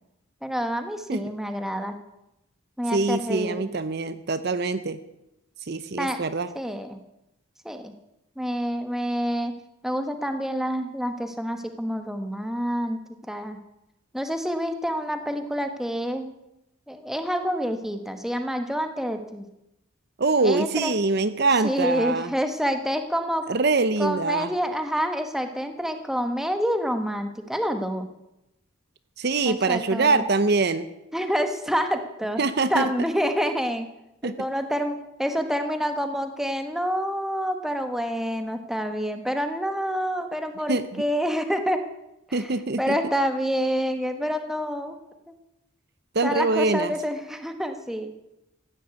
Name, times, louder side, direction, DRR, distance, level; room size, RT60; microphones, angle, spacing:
voice 1, 0.4-2.0 2.8-3.6 6.0-6.2 6.5-7.0 7.6-7.9 8.4-9.5 9.8-13.6 14.1-16.3 16.9-19.4 20.4-20.9 21.6-23.5 24.0-28.1 29.4-30.2 31.1-32.4 32.7-33.9 34.2-41.8 42.3-45.0 46.2-48.1, equal, ahead, 7 dB, 1.2 m, -27 dB
voice 2, 2.9-5.0 5.6-6.5 20.2-22.3 23.5-24.5 29.2-30.9 32.4-32.9 34.2-34.3 40.7-40.8 42.3-43.0 46.1-46.9, right 3 dB, 50° right, 12 dB, 0.7 m, -24 dB
15.5 x 10.0 x 8.2 m, 0.89 s
head